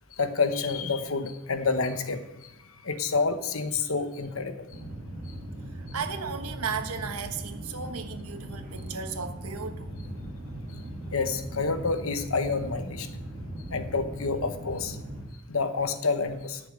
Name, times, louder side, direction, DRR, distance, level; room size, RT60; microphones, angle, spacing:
voice 1, 0.2-2.2 2.8-4.7 11.1-13.1 13.7-15.0 15.5-16.6, left 4 dB, 65° left, 9 dB, 1.1 m, -28 dB
sound 1, 4.7-15.2, right 1 dB, 40° right, 2.5 m, -39 dB
voice 2, 5.7-9.9, right 6 dB, 80° right, 7 dB, 1.3 m, -35 dB
11.5 x 6.8 x 8.7 m, 0.92 s
head